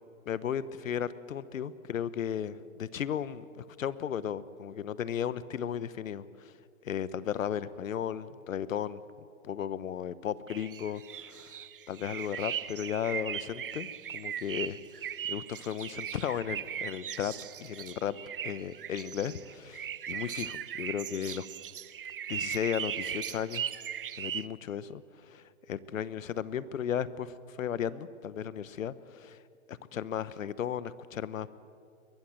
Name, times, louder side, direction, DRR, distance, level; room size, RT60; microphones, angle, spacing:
voice 1, 0.3-6.5 6.8-9.0 9.4-11.6 11.9-18.2 18.4-21.5 22.3-23.6 24.2-29.4 29.7-31.5, left 9 dB, 65° left, 17 dB, 1.1 m, -35 dB
sound 1, 10.5-24.5, right 9 dB, 40° right, 0.5 m, -38 dB
22.5 x 20.5 x 7.8 m, 2.4 s
hypercardioid pair, 165°, 43 cm